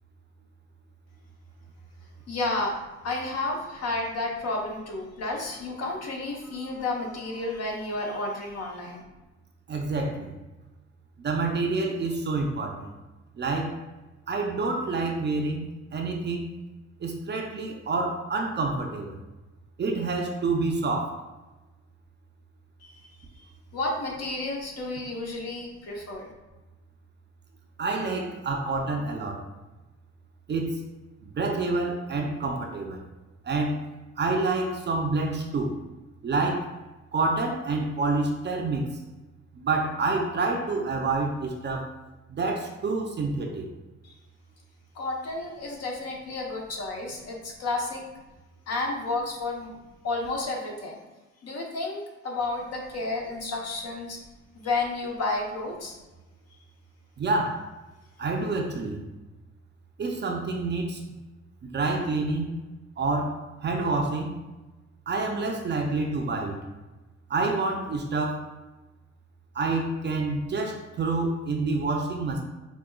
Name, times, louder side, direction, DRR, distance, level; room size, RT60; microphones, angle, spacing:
voice 1, 2.3-2.8 3.0-9.0 22.8-23.1 23.7-26.3 44.0-44.1 44.9-48.0 48.7-49.7 50.0-51.0 51.4-54.2 54.5-55.9, left 2 dB, 55° left, 0 dB, 0.9 m, -31 dB
voice 2, 9.7-10.3 11.2-12.9 13.4-13.8 14.3-16.5 17.0-19.2 19.8-21.2 27.8-29.4 30.5-30.8 31.2-33.0 33.4-33.8 34.2-35.8 36.2-36.7 37.1-39.0 39.6-41.9 42.3-43.7 57.2-57.7 58.2-59.0 60.0-61.0 61.6-62.5 63.0-64.4 65.1-66.6 67.3-68.5 69.5-72.4, right 3 dB, 35° right, 2 dB, 0.5 m, -28 dB
4.9 x 2.2 x 2.2 m, 1.1 s
cardioid pair, 90°, 30 cm